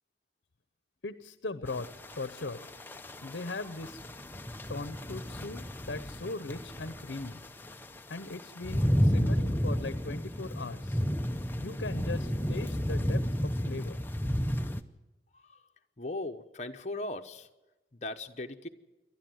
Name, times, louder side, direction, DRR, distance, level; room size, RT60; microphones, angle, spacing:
voice 1, 1.0-1.9 2.2-2.7 3.2-4.0 4.7-7.4 8.1-11.0 11.6-14.0, left 3 dB, 75° left, 12 dB, 0.8 m, -39 dB
sound 1, 1.7-14.8, equal, 10° left, 0.6 m, -32 dB
voice 2, 16.0-17.5 17.9-18.7, left 2 dB, 40° left, 5 dB, 1.0 m, -38 dB
27.5 x 12.0 x 7.9 m, 1.1 s
head